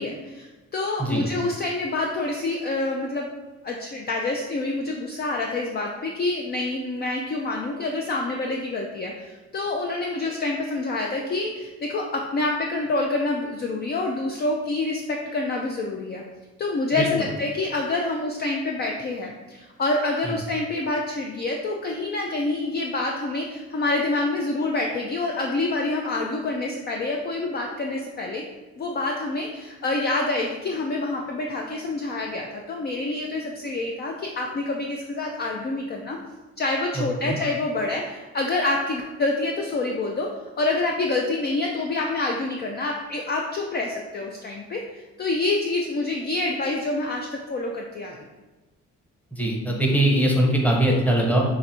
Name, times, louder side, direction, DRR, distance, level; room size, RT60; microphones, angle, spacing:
voice 1, 0.0-3.3 3.6-16.2 16.6-28.4 28.8-36.2 36.6-40.3 40.6-48.2, left 2 dB, 35° left, 1 dB, 0.4 m, -27 dB
voice 2, 37.0-37.4 49.3-51.4, right 1 dB, 5° left, -1 dB, 0.9 m, -21 dB
5.7 x 2.5 x 2.7 m, 1.2 s
cardioid pair, 90°, 30 cm